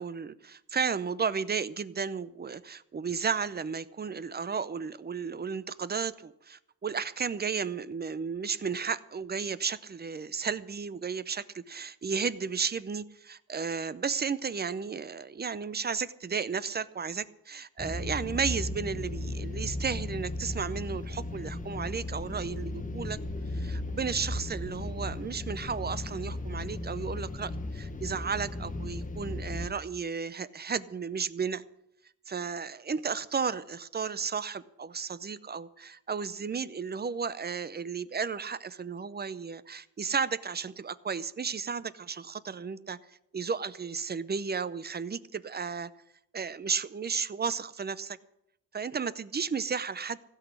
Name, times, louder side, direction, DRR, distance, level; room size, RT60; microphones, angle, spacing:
voice 1, 0.0-23.2 23.5-31.6 32.3-43.0 43.3-45.9 46.3-48.2 48.7-50.2, right 6 dB, 30° right, 16 dB, 0.6 m, -33 dB
sound 1, 17.8-29.7, left 2 dB, 25° left, 1.1 m, -36 dB
16.0 x 6.2 x 9.9 m, 0.81 s
cardioid pair, 110°, 33 cm